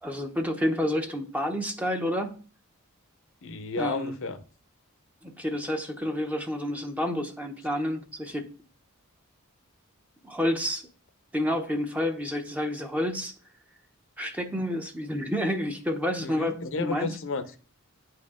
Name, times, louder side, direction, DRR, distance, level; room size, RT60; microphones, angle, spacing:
voice 1, 0.0-2.3 3.8-4.2 5.2-8.4 10.2-10.9 11.3-13.3 14.2-17.1, equal, 5° right, 0.7 m, -29 dB
voice 2, 3.4-4.4 16.2-17.6, left 3 dB, 65° left, 0.8 m, -32 dB
9.5 x 4.4 x 3.7 m
head